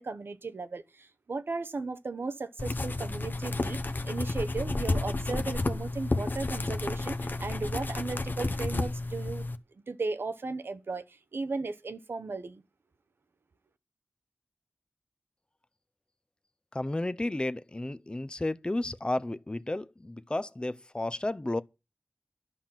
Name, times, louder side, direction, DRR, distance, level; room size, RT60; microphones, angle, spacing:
voice 1, 0.0-3.8 4.0-9.5 9.9-11.0 11.3-12.6, right 3 dB, 90° right, 0.9 m, -36 dB
sound 1, 2.6-9.6, left 2 dB, 60° left, 0.9 m, -31 dB
voice 2, 16.7-21.6, left 1 dB, 25° left, 0.6 m, -32 dB
11.0 x 5.8 x 8.9 m
wide cardioid pair, 65°, 4 cm